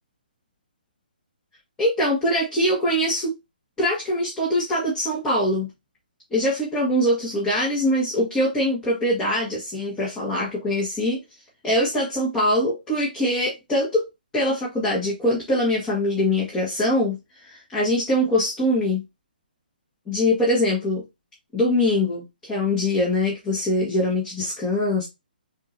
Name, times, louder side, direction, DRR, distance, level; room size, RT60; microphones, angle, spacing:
voice 1, 1.8-3.3 3.8-5.7 6.3-11.2 11.6-14.0 14.3-17.2 17.4-19.0 20.1-21.0 21.5-25.1, left 1 dB, 10° left, 1.6 m, -23 dB
7.1 x 2.8 x 2.6 m
figure-of-eight pair, 140°, 5 cm